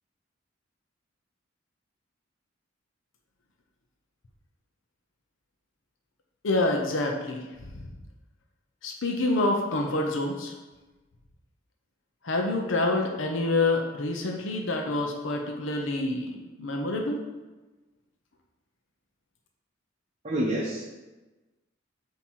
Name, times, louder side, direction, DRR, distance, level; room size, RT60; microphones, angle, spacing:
voice 1, 6.4-7.4 8.8-10.5 12.2-16.3 16.6-17.2, left 2 dB, 75° left, 2 dB, 0.7 m, -27 dB
voice 2, 20.2-20.9, right 1 dB, 35° right, -3 dB, 0.7 m, -27 dB
7.3 x 2.9 x 4.5 m, 1.2 s
head